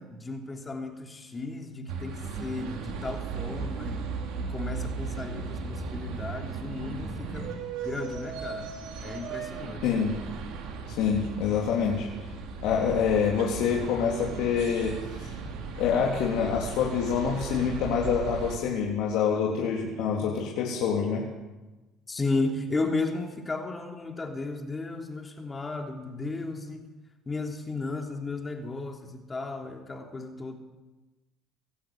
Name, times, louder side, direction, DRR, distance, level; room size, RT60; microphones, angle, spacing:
voice 1, 0.0-4.0 4.4-7.6 7.8-8.7 9.0-9.8 15.4-15.5 22.1-26.9 27.3-30.5, left 3 dB, 20° left, 3 dB, 3.1 m, -34 dB
sound 1, 1.9-18.6, right 5 dB, 75° right, 4.2 m, -36 dB
voice 2, 9.8-10.2 10.9-12.1 12.6-15.3 15.8-21.3, left 7 dB, 75° left, -2 dB, 3.5 m, -26 dB
24.5 x 13.0 x 9.3 m, 1.1 s
cardioid pair, 105°, 0 cm